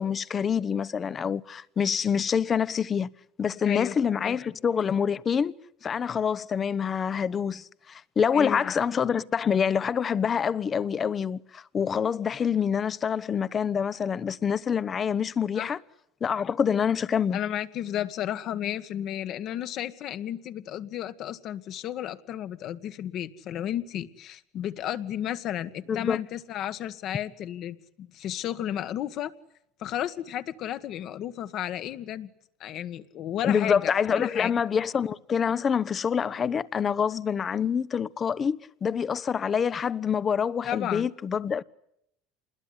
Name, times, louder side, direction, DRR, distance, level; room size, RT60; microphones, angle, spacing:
voice 1, 0.0-3.1 3.4-5.5 5.8-15.8 16.2-17.4 25.9-26.2 33.4-41.6, left 7 dB, 35° left, 1.0 m, -26 dB
voice 2, 8.3-8.7 15.5-15.7 17.3-29.3 29.8-32.3 32.6-34.5 40.6-41.1, left 11 dB, 55° left, 1.7 m, -33 dB
27.5 x 21.0 x 9.7 m
supercardioid pair, 100°, 0 cm